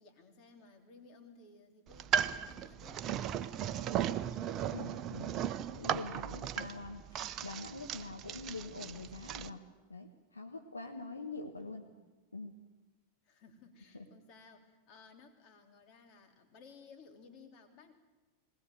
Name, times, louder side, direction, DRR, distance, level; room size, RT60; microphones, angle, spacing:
voice 1, 0.0-5.1 11.6-12.0 13.2-17.9, left 4 dB, 40° left, 5 dB, 3.4 m, -58 dB
sound 1, 1.9-9.5, right 9 dB, 30° right, 0.8 m, -36 dB
voice 2, 4.7-5.3 5.7-9.6 9.9-11.9 12.3-12.5 13.9-14.0, left 3 dB, 80° left, 5 dB, 1.5 m, -44 dB
21.0 x 19.5 x 7.8 m, 1.2 s
figure-of-eight pair, 90°, 0 cm